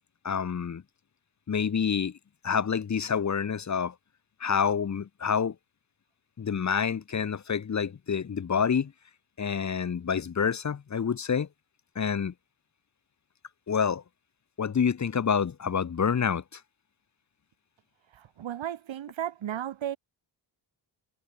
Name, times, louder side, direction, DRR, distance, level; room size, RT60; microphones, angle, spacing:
voice 1, 0.2-0.8 1.5-2.1 2.4-3.9 4.4-5.5 6.4-8.9 9.4-11.5 11.9-12.3 13.7-14.0 14.6-16.4, left 7 dB, 40° left, 1.2 m, -27 dB
voice 2, 18.1-20.0, right 11 dB, 85° right, 4.5 m, -34 dB
cardioid pair, 100°, 45 cm